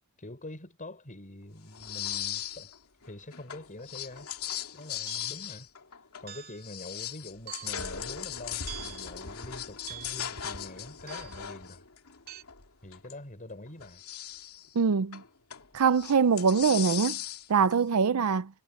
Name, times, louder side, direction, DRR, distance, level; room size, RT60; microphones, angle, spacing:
voice 1, 0.2-2.7 3.0-4.3 4.7-5.7 6.0-11.9 12.8-14.0, left 1 dB, 35° left, 6.5 m, -45 dB
sound 1, 1.7-2.8 3.0-6.3 6.6-13.1 13.7-14.7 15.1-15.7 15.9-17.8, left 9 dB, 80° left, 2.7 m, -38 dB
sound 2, 5.1-5.5 6.3-6.7 7.5-7.9 8.7-9.1 9.9-10.3 11.1-11.5 12.3-12.4, right 11 dB, 45° right, 2.5 m, -45 dB
voice 2, 14.8-15.2 15.7-17.2 17.5-18.5, right 6 dB, 75° right, 0.5 m, -23 dB
head